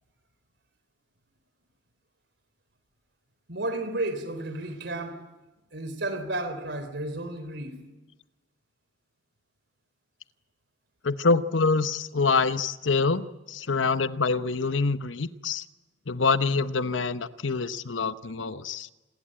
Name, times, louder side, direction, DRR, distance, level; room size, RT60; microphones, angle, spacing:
voice 1, 3.5-5.2 5.7-7.8, right 2 dB, 60° right, 3.8 m, -32 dB
voice 2, 11.0-15.6 16.1-18.9, left 4 dB, 80° left, 1.0 m, -26 dB
28.0 x 20.5 x 8.9 m
head